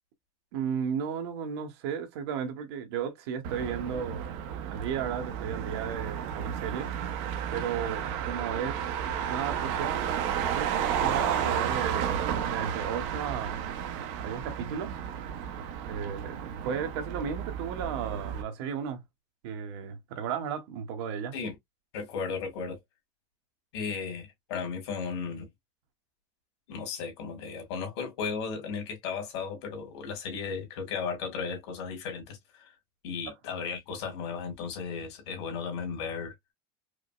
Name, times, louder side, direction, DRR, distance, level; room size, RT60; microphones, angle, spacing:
voice 1, 0.5-4.3 4.7-6.9 7.5-8.9 9.3-10.1 10.5-13.6 14.2-15.0 15.9-19.0 19.4-21.3 33.3-33.4, right 7 dB, 70° right, 1.2 m, -34 dB
Motor vehicle (road), 3.4-18.4, right 8 dB, 55° right, 0.8 m, -32 dB
voice 2, 21.9-22.8 23.7-25.5 26.7-32.7 33.0-36.3, left 5 dB, 75° left, 2.0 m, -35 dB
4.9 x 2.0 x 2.3 m
supercardioid pair, 165°, 14 cm